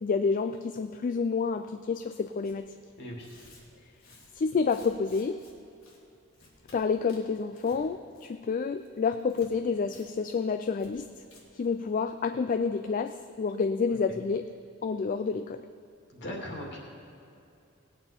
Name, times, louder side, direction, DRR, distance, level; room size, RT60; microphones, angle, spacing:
voice 1, 0.0-2.6 4.4-5.4 6.7-11.1 11.5-14.5 14.8-15.6, left 5 dB, 40° left, 9 dB, 0.3 m, -29 dB
Tearing, 2.4-2.6 3.1-5.5 5.8-6.0 6.3-6.8 7.1-7.8 8.1-8.5 8.8-9.5 9.9-10.1 10.3-10.4 10.8-10.9 11.2-11.4, left 2 dB, 85° left, 3.0 m, -56 dB
voice 2, 16.1-16.8, left 1 dB, 60° left, -2 dB, 2.5 m, -38 dB
19.0 x 8.7 x 4.4 m, 2.6 s
head